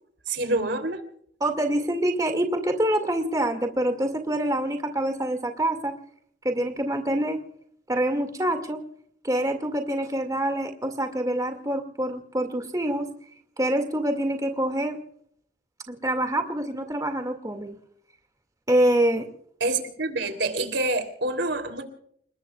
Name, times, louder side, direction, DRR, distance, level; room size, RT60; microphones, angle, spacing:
voice 1, 0.3-1.0 19.6-21.8, right 2 dB, 75° right, 7 dB, 3.2 m, -27 dB
voice 2, 1.4-6.0 6.4-7.4 7.9-8.8 9.2-13.1 13.6-15.0 15.9-17.8 18.7-19.3, right 1 dB, 20° right, 6 dB, 2.1 m, -26 dB
30.0 x 19.5 x 2.4 m, 0.66 s
head